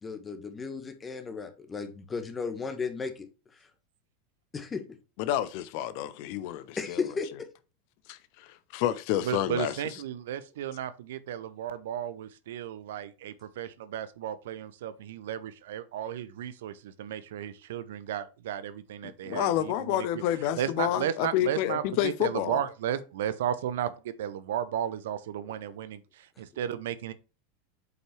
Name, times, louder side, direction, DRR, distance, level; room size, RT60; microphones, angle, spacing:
voice 1, 0.0-3.3 4.5-4.8 6.8-7.3, left 5 dB, 20° left, 1.5 m, -34 dB
voice 2, 5.2-7.0 8.1-9.8 19.0-22.6, left 12 dB, 50° left, 0.6 m, -29 dB
voice 3, 9.2-20.2 20.6-27.1, right 10 dB, 65° right, 0.7 m, -34 dB
8.0 x 5.3 x 3.3 m
figure-of-eight pair, 85°, 0 cm